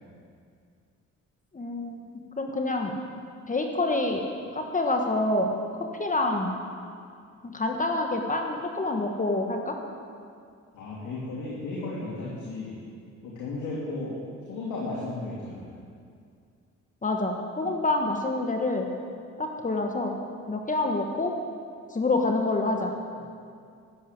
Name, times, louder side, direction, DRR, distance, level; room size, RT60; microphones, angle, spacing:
voice 1, 1.5-2.9 3.5-4.2 4.5-5.5 6.0-6.5 7.4-9.8 17.0-18.9 19.4-20.2 20.5-21.3 21.9-22.9, left 2 dB, 25° left, 3 dB, 1.4 m, -27 dB
voice 2, 10.7-12.7 13.2-14.1 14.5-15.7, left 2 dB, 85° left, -6 dB, 3.1 m, -34 dB
13.0 x 8.6 x 9.3 m, 2.3 s
cardioid pair, 90°, 30 cm